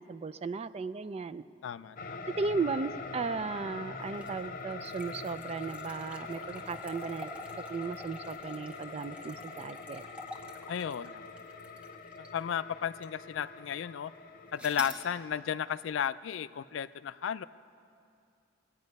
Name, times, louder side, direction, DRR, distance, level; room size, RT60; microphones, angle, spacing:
voice 1, 0.0-1.4 2.4-7.3 7.7-10.0, right 4 dB, 30° right, 15 dB, 0.3 m, -36 dB
voice 2, 1.6-2.2 10.7-11.2 12.2-14.1 14.5-17.5, left 8 dB, 75° left, 15 dB, 0.3 m, -34 dB
sound 1, 2.0-16.1, left 4 dB, 45° left, 0.7 m, -44 dB
sound 2, 4.1-12.5 13.0-13.1 14.6-15.1, equal, 5° right, 0.7 m, -48 dB
22.5 x 8.9 x 5.3 m, 2.5 s
head